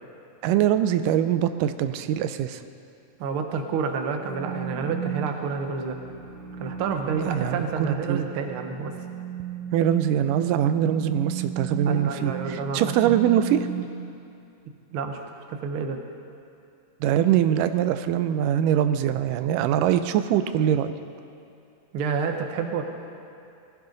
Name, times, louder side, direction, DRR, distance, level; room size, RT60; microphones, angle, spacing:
voice 1, 0.4-2.6 7.1-8.2 9.7-13.7 17.0-20.9, right 10 dB, 85° right, 10 dB, 2.2 m, -23 dB
voice 2, 3.2-6.0 6.6-8.9 11.8-13.2 14.9-15.2 15.5-16.0 21.9-22.8, right 5 dB, 65° right, 4 dB, 1.3 m, -29 dB
sound 1, 4.2-13.8, right 8 dB, 35° right, 2.0 m, -35 dB
20.0 x 14.5 x 3.9 m, 2.6 s
omnidirectional pair, 3.7 m